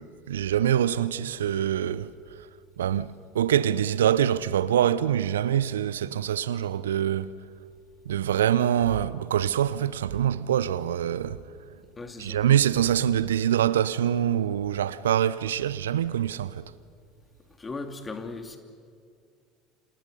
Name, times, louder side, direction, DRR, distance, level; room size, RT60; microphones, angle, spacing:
voice 1, 0.0-2.4 2.8-7.3 8.1-11.4 12.2-16.7, right 10 dB, 75° right, 0.6 m, -25 dB
voice 2, 12.0-12.4 17.6-18.6, left 3 dB, 20° left, 2.8 m, -37 dB
29.5 x 27.0 x 5.4 m
figure-of-eight pair, 70°, 0 cm